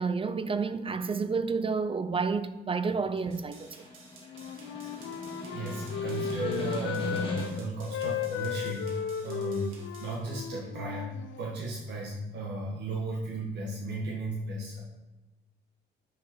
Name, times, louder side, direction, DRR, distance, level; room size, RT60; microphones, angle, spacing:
voice 1, 0.0-3.8, right 4 dB, 25° right, 0.5 m, -30 dB
Snare drum, 3.0-7.8, left 2 dB, 25° left, 1.7 m, -40 dB
sound 1, 3.3-10.2, right 4 dB, 90° right, 1.7 m, -54 dB
Wind instrument woodwind instrument, 4.2-7.5 7.8-11.6, left 7 dB, 85° left, 0.6 m, -35 dB
voice 2, 5.5-14.8, right 2 dB, 60° right, 1.5 m, -35 dB
5.5 x 5.0 x 6.0 m
cardioid pair, 90°, 20 cm